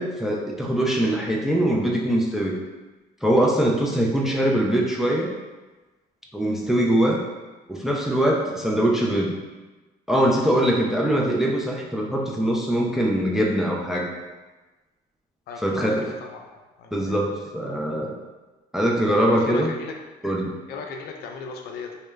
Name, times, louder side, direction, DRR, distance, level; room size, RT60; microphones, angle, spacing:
voice 1, 0.0-2.6 3.2-5.3 6.3-7.2 7.7-9.4 10.1-14.1 15.6-16.1 16.9-18.1 18.7-19.7 20.2-20.5, right 1 dB, ahead, -1 dB, 0.3 m, -22 dB
voice 2, 15.5-16.4 16.8-17.3 19.3-20.0 20.7-22.0, left 4 dB, 70° left, 2 dB, 0.4 m, -36 dB
2.2 x 2.0 x 3.2 m, 1.2 s
cardioid pair, 110°, 17 cm